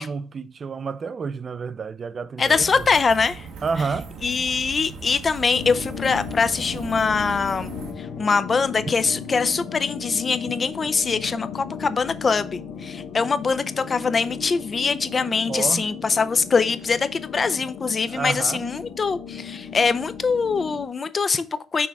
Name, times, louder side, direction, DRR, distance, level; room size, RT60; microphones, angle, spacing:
voice 1, 0.0-2.9 3.6-4.1 15.5-15.9 18.1-18.6, right 5 dB, 45° right, 0.4 m, -29 dB
voice 2, 2.4-3.5 4.2-7.7 8.0-21.9, left 5 dB, 35° left, 0.5 m, -23 dB
sound 1, 2.4-7.9, right 4 dB, 85° right, 1.1 m, -39 dB
sound 2, 5.5-20.9, left 6 dB, 90° left, 0.7 m, -36 dB
6.0 x 3.5 x 4.5 m
cardioid pair, 90°, 0 cm